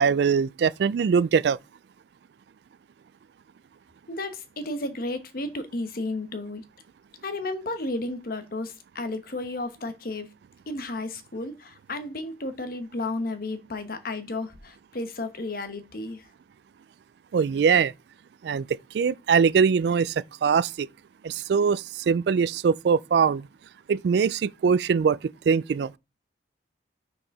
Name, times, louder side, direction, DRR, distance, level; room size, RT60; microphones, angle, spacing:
voice 1, 0.0-1.6 17.3-17.9 18.4-20.9 21.2-23.4 23.9-25.2 25.5-25.9, right 6 dB, 65° right, 0.3 m, -22 dB
voice 2, 4.1-6.6 7.2-10.3 10.7-16.3, left 2 dB, 50° left, 1.1 m, -33 dB
6.2 x 4.7 x 5.3 m
head